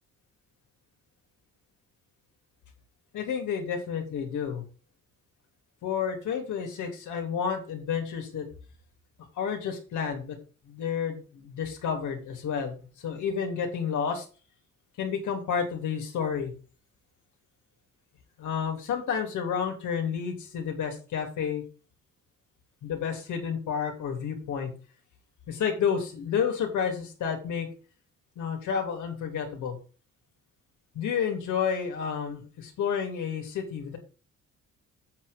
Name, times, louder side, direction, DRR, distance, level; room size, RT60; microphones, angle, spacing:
voice 1, 3.1-4.6 5.8-8.5 9.4-10.4 10.6-14.2 15.0-16.5 18.4-21.7 22.8-24.7 25.5-27.7 28.4-29.8 30.9-34.0, left 7 dB, 80° left, 2 dB, 3.1 m, -30 dB
8.2 x 6.4 x 5.2 m, 0.36 s
cardioid pair, 90°, 30 cm